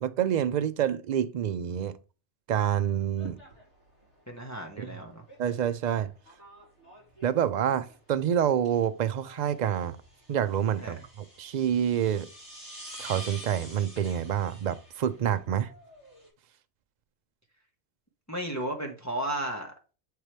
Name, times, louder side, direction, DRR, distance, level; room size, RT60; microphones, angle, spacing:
voice 1, 0.0-2.0 2.5-3.4 4.8-5.0 5.4-6.1 7.2-10.0 10.3-12.3 13.0-15.7, right 9 dB, 55° right, 0.5 m, -27 dB
sound 1, 3.0-16.3, equal, 90° left, 3.3 m, -49 dB
voice 2, 4.3-5.2 10.8-11.0 18.3-19.7, right 1 dB, 15° left, 1.2 m, -34 dB
7.4 x 4.6 x 3.3 m
omnidirectional pair, 1.2 m